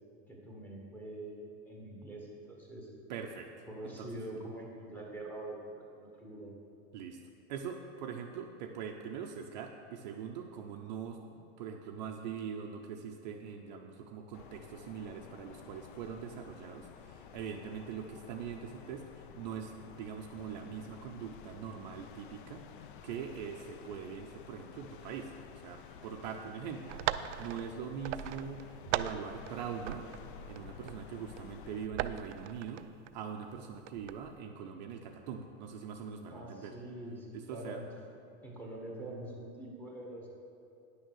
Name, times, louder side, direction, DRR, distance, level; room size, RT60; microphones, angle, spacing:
voice 1, 0.3-2.9 3.7-6.5 36.3-37.9 38.4-40.3, right 1 dB, 5° left, -2 dB, 0.9 m, -44 dB
voice 2, 3.1-4.1 6.9-7.2 7.5-30.1 30.5-32.9 33.1-36.8 37.3-37.8, right 7 dB, 40° right, 3 dB, 0.5 m, -42 dB
sound 1, 14.3-31.9, left 8 dB, 50° left, 0.5 m, -52 dB
sound 2, 26.9-29.5 29.8-31.4 31.8-33.1 33.5-34.3, right 12 dB, 90° right, 0.5 m, -39 dB
9.6 x 6.5 x 6.3 m, 2.7 s
supercardioid pair, 175°, 34 cm